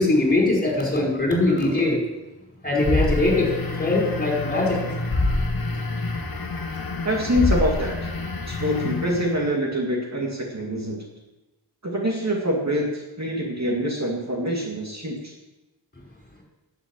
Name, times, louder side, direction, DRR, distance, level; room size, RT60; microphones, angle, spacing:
voice 1, 0.0-2.0 2.6-4.8 5.3-5.4, left 2 dB, 20° left, -1 dB, 5.0 m, -21 dB
sound 1, 2.8-9.5, left 2 dB, 50° left, 1.6 m, -27 dB
voice 2, 7.0-8.0 8.5-11.0 11.8-15.3, equal, 35° right, -1 dB, 2.3 m, -25 dB
11.5 x 8.5 x 7.5 m, 1.0 s
wide cardioid pair, 80°, 46 cm